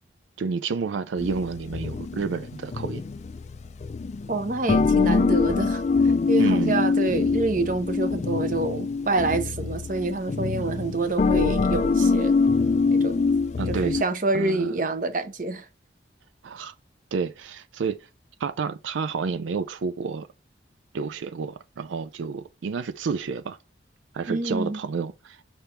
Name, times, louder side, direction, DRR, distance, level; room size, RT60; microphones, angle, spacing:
voice 1, 0.4-3.0 6.4-6.8 13.6-14.0 14.3-14.7 16.4-16.7 17.1-18.1 18.4-20.3 20.9-23.6 24.1-25.4, right 5 dB, 85° right, 0.4 m, -30 dB
sound 1, 1.2-14.0, left 4 dB, 35° left, 0.3 m, -24 dB
voice 2, 4.3-5.8 6.3-12.4 12.9-13.4 13.7-15.7 24.3-24.8, right 2 dB, 45° right, 0.8 m, -27 dB
5.6 x 3.4 x 5.8 m
head